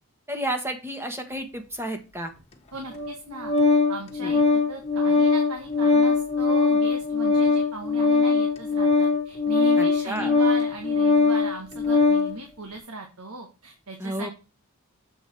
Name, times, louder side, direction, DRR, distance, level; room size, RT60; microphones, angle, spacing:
voice 1, 0.3-2.3 4.2-4.3 9.8-10.3 14.0-14.3, right 1 dB, 10° right, 5 dB, 1.5 m, -31 dB
voice 2, 2.7-14.3, right 2 dB, 80° right, 2 dB, 1.7 m, -38 dB
Organ, 2.9-12.3, left 4 dB, 30° left, 1.6 m, -21 dB
7.8 x 5.1 x 4.6 m, 0.30 s
head